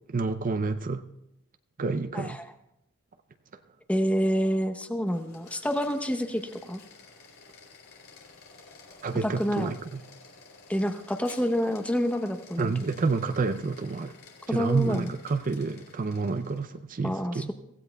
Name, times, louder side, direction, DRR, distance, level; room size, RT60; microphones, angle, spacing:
voice 1, 0.1-1.0 1.8-2.4 9.0-10.0 12.6-14.1 14.5-17.5, right 4 dB, 40° right, 9 dB, 0.5 m, -29 dB
voice 2, 2.1-2.5 3.9-6.8 9.2-9.7 10.7-12.7 14.5-15.1 17.0-17.5, equal, 5° left, 7 dB, 0.8 m, -28 dB
sound 1, 5.0-16.8, left 4 dB, 70° left, 3.3 m, -52 dB
24.5 x 16.0 x 2.3 m, 0.86 s
head